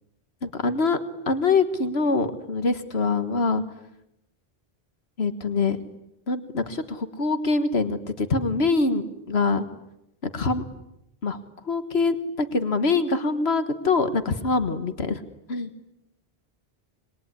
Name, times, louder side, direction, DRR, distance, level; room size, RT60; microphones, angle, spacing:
voice 1, 0.4-1.0 1.3-3.6 5.2-5.8 6.3-9.6 10.2-10.6 11.2-11.4 11.6-15.2 15.5-15.7, left 3 dB, 80° left, 10 dB, 1.8 m, -24 dB
27.0 x 22.0 x 9.9 m, 0.84 s
omnidirectional pair, 1.1 m